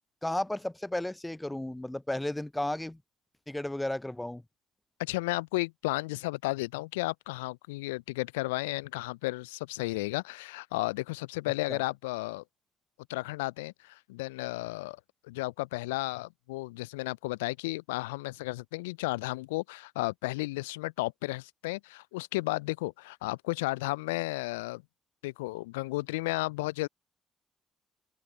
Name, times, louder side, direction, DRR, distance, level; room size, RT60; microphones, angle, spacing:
voice 1, 0.2-3.0 3.5-4.4 11.7-11.8, left 1 dB, 10° left, 0.7 m, -33 dB
voice 2, 5.0-12.4 13.1-24.8 25.2-26.9, left 22 dB, 80° left, 0.3 m, -33 dB
open air
figure-of-eight pair, 40°, 0 cm